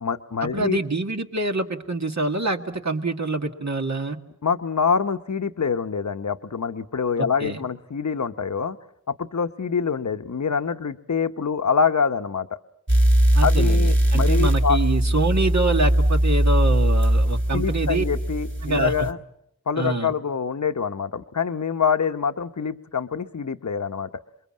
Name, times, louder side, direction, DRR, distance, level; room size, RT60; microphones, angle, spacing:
voice 1, 0.0-0.8 4.4-8.8 9.1-12.6 13.4-14.8 17.5-19.2 19.7-24.1, left 6 dB, 65° left, 9 dB, 0.9 m, -25 dB
voice 2, 0.5-4.2 7.2-7.6 13.3-18.0 18.6-19.1 19.8-20.1, right 2 dB, 60° right, 4 dB, 2.0 m, -26 dB
sound 1, 12.9-19.1, right 1 dB, 40° right, 2.4 m, -20 dB
28.5 x 22.5 x 7.5 m, 0.76 s
wide cardioid pair, 45°, 31 cm